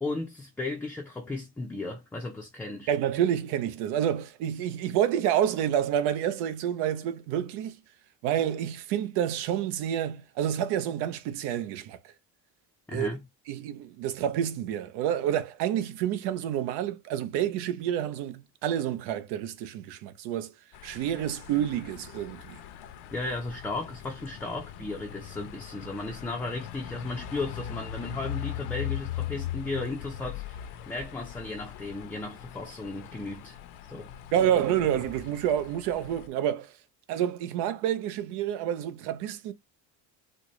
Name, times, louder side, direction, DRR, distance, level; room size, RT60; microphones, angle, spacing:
voice 1, 0.0-2.9 12.9-13.2 23.1-33.6 33.9-34.1 34.4-34.5, left 2 dB, 5° left, 0.4 m, -35 dB
voice 2, 2.9-7.8 8.2-12.1 12.9-13.1 13.5-20.5 20.8-22.6 34.3-36.7 37.1-39.5, right 10 dB, 85° right, 0.7 m, -28 dB
sound 1, 20.7-36.3, left 11 dB, 80° left, 0.7 m, -40 dB
4.3 x 2.1 x 3.0 m
cardioid pair, 150°, 40 cm